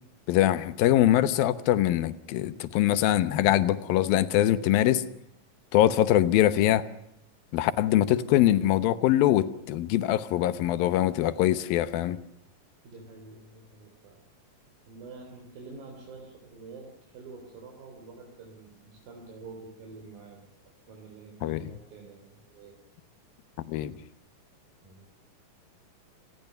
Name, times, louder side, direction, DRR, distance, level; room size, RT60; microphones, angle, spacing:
voice 1, 0.3-5.0 5.7-6.9 7.5-12.2 21.4-21.6 23.7-23.9, left 13 dB, 85° left, 14 dB, 2.8 m, -23 dB
voice 2, 12.8-14.2 14.9-20.4 20.9-22.8 24.8-25.1, right 3 dB, 80° right, 1 dB, 5.6 m, -47 dB
27.5 x 20.0 x 6.8 m, 0.81 s
omnidirectional pair, 4.0 m